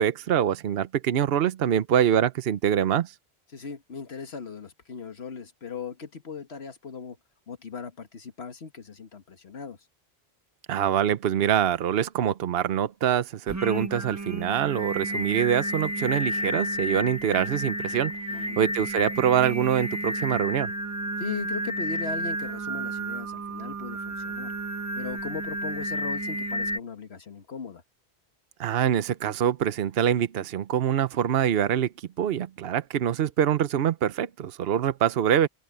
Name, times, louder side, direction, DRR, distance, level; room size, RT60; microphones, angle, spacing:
voice 1, 0.0-3.1 10.7-18.1 18.6-20.7 28.6-31.9 32.2-35.5, right 9 dB, 70° right, 0.9 m, -24 dB
voice 2, 3.5-7.2 7.5-9.8 18.3-18.6 21.2-24.5 25.0-27.8, left 5 dB, 80° left, 1.8 m, -38 dB
Singing, 13.5-26.8, right 1 dB, 15° right, 1.0 m, -31 dB
omnidirectional pair, 1.1 m